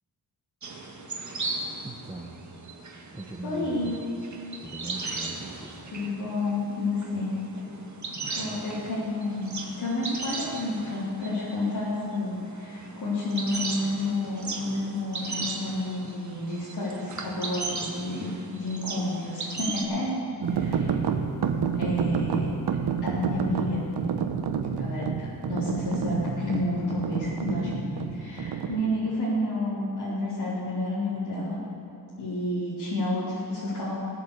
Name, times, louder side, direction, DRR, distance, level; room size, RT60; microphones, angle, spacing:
sound 1, 0.6-19.8, right 3 dB, 45° right, 1.7 m, -37 dB
voice 1, 1.8-2.4 3.1-4.0 4.6-5.8 8.1-8.7 20.5-20.7, right 1 dB, 10° right, 0 dB, 1.1 m, -40 dB
voice 2, 3.4-4.0 5.9-7.3 8.4-20.2 20.5-20.9 21.7-22.5 23.0-23.8 24.8-25.1 25.5-31.6 32.2-33.9, left 1 dB, 80° left, -10 dB, 3.7 m, -30 dB
sound 2, 20.4-28.8, right 6 dB, 80° right, 0.9 m, -29 dB
16.5 x 8.7 x 6.8 m, 2.5 s
cardioid pair, 85°, 39 cm